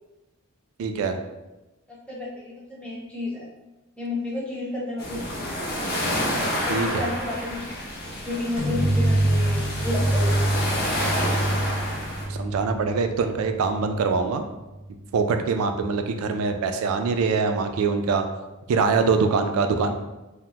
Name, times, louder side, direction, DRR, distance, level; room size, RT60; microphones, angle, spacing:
voice 1, 0.8-1.2 6.7-7.1 12.3-14.4 15.1-18.3 18.7-20.0, right 4 dB, 80° right, 7 dB, 0.3 m, -23 dB
voice 2, 2.1-3.5 4.0-5.6 6.7-7.7 8.3-10.4, left 2 dB, 5° left, -6 dB, 0.6 m, -31 dB
sound 1, 5.0-12.3, equal, 45° left, 0.5 m, -29 dB
sound 2, 8.6-14.1, right 1 dB, 70° left, 0.9 m, -25 dB
2.8 x 2.0 x 3.2 m, 1.0 s
head